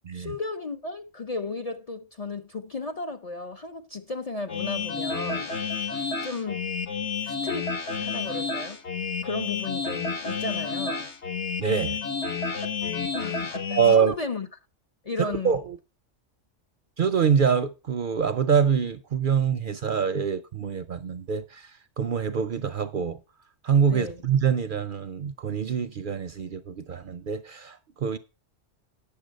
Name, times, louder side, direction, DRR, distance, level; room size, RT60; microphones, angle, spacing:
voice 1, 0.1-5.5 6.2-6.6 7.2-8.8 9.2-11.1 13.1-14.5 15.0-15.6 23.9-24.2, left 3 dB, 40° left, 0.6 m, -34 dB
sound 1, 4.5-13.9, left 5 dB, 65° left, 1.6 m, -30 dB
voice 2, 11.6-12.0 13.7-14.1 15.2-15.8 17.0-21.7 22.0-23.2 23.6-28.2, right 7 dB, 55° right, 0.6 m, -25 dB
9.4 x 7.0 x 5.1 m
omnidirectional pair, 1.3 m